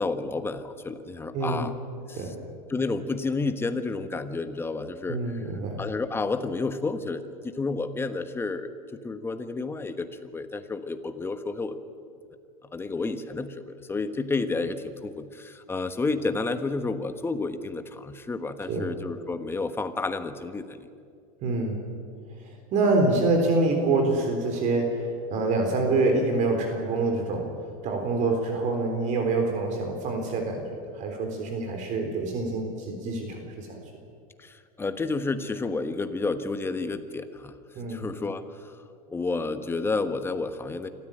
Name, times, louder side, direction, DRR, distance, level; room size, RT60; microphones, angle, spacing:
voice 1, 0.0-1.7 2.1-2.3 2.7-5.5 5.8-11.8 12.7-20.8 34.4-37.5 37.9-38.8 39.1-40.9, left 3 dB, 10° left, 9 dB, 1.3 m, -30 dB
voice 2, 1.3-1.7 2.2-2.4 5.1-5.8 18.7-18.9 21.4-21.8 22.4-27.5 27.8-30.6 30.9-33.8 37.8-38.1, right 3 dB, 40° right, 4 dB, 3.7 m, -26 dB
26.0 x 14.0 x 9.1 m, 2.3 s
supercardioid pair, 130°, 18 cm